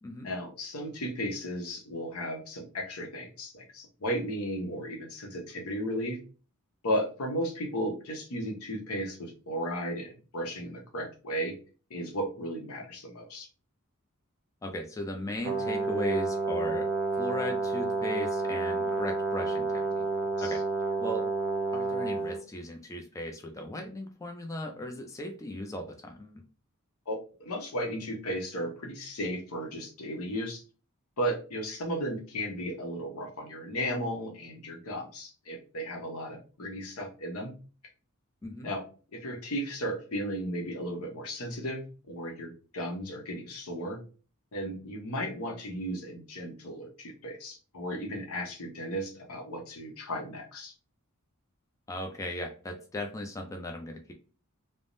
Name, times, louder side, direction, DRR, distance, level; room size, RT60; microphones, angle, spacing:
voice 1, 0.2-6.2 6.8-11.5 11.9-13.5 20.4-20.6 27.1-30.6 31.2-37.5 38.6-38.8 39.1-44.0 44.5-50.7, equal, 75° left, 2 dB, 0.9 m, -35 dB
voice 2, 14.6-16.9 17.2-20.0 20.4-20.6 21.0-21.3 21.7-26.4 38.4-38.7 51.9-54.1, left 1 dB, 15° left, 3 dB, 0.4 m, -37 dB
Brass instrument, 15.4-22.4, right 3 dB, 60° right, 0.5 m, -30 dB
3.4 x 2.0 x 2.5 m, 0.36 s
head